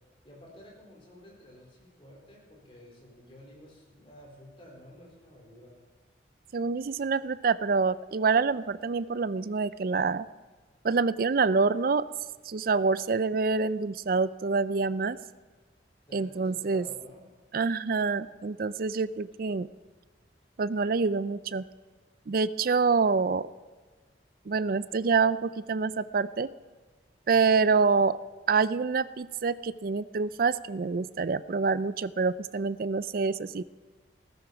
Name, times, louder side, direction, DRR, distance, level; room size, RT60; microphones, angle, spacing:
voice 1, 0.2-5.7 16.1-17.3, equal, 30° left, -2 dB, 4.5 m, -51 dB
voice 2, 6.5-10.3 10.8-12.0 12.5-15.2 16.1-16.9 17.5-19.7 20.6-21.7 22.3-23.5 24.5-26.5 27.3-28.2 28.5-33.6, right 4 dB, 50° right, 16 dB, 0.4 m, -26 dB
16.0 x 14.0 x 4.7 m, 1.3 s
head